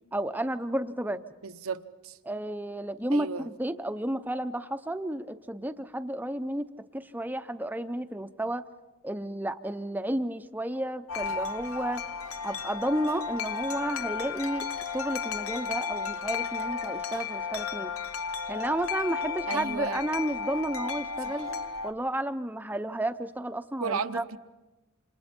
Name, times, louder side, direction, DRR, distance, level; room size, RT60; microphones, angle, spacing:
voice 1, 0.1-1.2 2.2-6.7 6.9-8.6 9.0-12.0 12.4-14.7 14.9-17.9 18.5-21.5 21.8-24.2, right 1 dB, 10° right, 0.6 m, -32 dB
voice 2, 1.4-2.2 3.1-3.5 19.5-20.0 21.2-21.5 23.8-24.4, right 5 dB, 80° right, 0.9 m, -34 dB
Wind chime, 11.1-21.9, left 5 dB, 75° left, 0.9 m, -34 dB
28.5 x 27.5 x 4.4 m
head